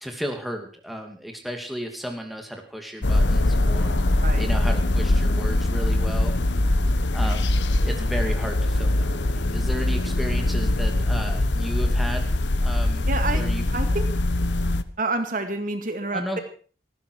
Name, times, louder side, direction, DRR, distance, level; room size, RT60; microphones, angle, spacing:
voice 1, 0.0-4.0 4.4-6.3 7.1-12.3 12.6-13.6 16.1-16.4, equal, ahead, 3 dB, 2.7 m, -34 dB
sound 1, 3.0-14.8, left 1 dB, 80° left, 1.1 m, -22 dB
voice 2, 13.1-14.1 15.0-16.4, right 2 dB, 45° right, 7 dB, 2.2 m, -28 dB
19.0 x 15.5 x 4.7 m, 0.42 s
head